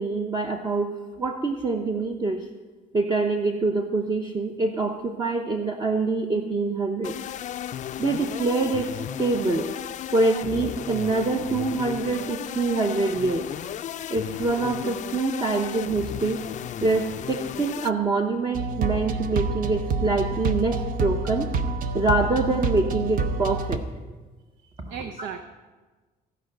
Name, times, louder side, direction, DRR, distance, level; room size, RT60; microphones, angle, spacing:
voice 1, 0.0-2.5 2.9-7.1 8.0-9.7 10.1-13.5 14.1-16.4 16.8-21.5 21.9-23.8 24.8-24.9, right 3 dB, 25° right, 3 dB, 0.8 m, -25 dB
sound 1, 7.0-17.9, left 10 dB, 45° left, 0.4 m, -34 dB
sound 2, 18.5-23.8, right 3 dB, 55° right, 0.9 m, -27 dB
voice 2, 24.6-25.4, right 7 dB, 90° right, 7 dB, 0.7 m, -37 dB
16.0 x 5.3 x 7.7 m, 1.3 s
cardioid pair, 110°, 17 cm